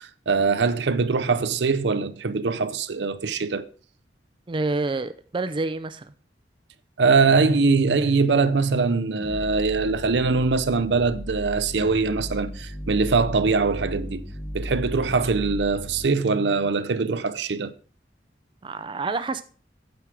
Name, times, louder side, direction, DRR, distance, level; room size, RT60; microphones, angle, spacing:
voice 1, 0.0-3.7 7.0-14.2 14.5-17.7, right 4 dB, 75° right, 0.6 m, -22 dB
voice 2, 4.5-6.1 18.6-19.4, right 3 dB, 30° right, 0.4 m, -28 dB
sound 1, 7.3-16.1, equal, 30° left, 1.5 m, -35 dB
9.1 x 6.3 x 4.7 m
head